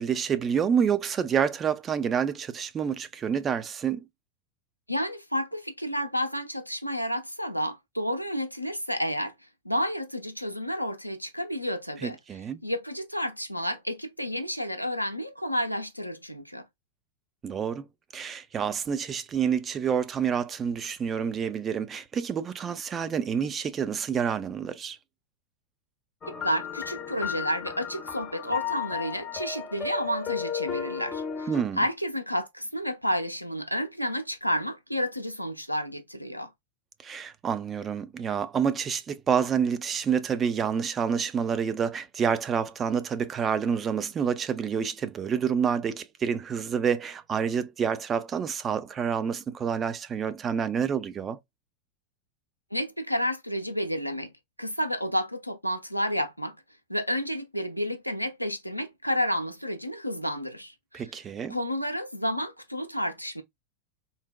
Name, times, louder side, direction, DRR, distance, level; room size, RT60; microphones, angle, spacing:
voice 1, 0.0-4.0 12.0-12.6 17.4-17.9 18.1-25.0 31.5-31.8 37.0-51.4 60.9-61.6, right 7 dB, 25° right, 0.4 m, -28 dB
voice 2, 4.9-9.3 9.6-12.2 12.6-16.6 26.4-31.5 31.8-36.5 52.7-54.3 54.6-56.6 56.9-61.0 61.5-63.4, equal, 90° left, 0.6 m, -30 dB
sound 1, 26.2-31.6, left 7 dB, 25° left, 0.6 m, -34 dB
3.9 x 2.1 x 2.2 m
figure-of-eight pair, 90°, 0 cm